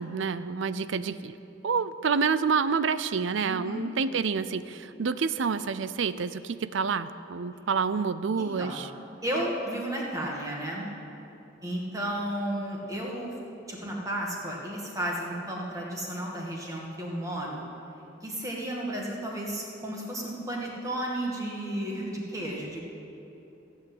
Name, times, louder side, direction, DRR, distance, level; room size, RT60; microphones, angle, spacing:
voice 1, 0.0-1.4 1.6-8.9, right 5 dB, 70° right, 14 dB, 0.5 m, -28 dB
voice 2, 3.5-3.8 8.4-8.8 9.2-10.9 11.6-13.4 13.7-17.6 18.2-22.8, right 1 dB, 15° right, -2 dB, 2.0 m, -33 dB
15.0 x 8.3 x 7.8 m, 3.0 s
head